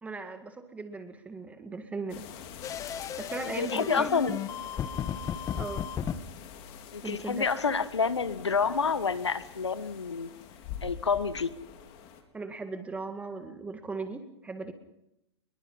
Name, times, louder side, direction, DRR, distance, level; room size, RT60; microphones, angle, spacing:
voice 1, 0.0-2.2 3.2-4.1 5.6-5.9 7.0-7.5 12.3-14.7, right 3 dB, 10° right, 7 dB, 1.9 m, -38 dB
sound 1, 2.1-12.2, left 7 dB, 40° left, 4.4 m, -46 dB
sound 2, 2.6-6.2, left 8 dB, 25° left, 1.4 m, -34 dB
voice 2, 3.6-4.4 6.9-10.3 10.8-11.5, left 5 dB, 90° left, 14 dB, 1.4 m, -28 dB
28.0 x 22.0 x 5.6 m, 0.83 s
hypercardioid pair, 120°, 14 cm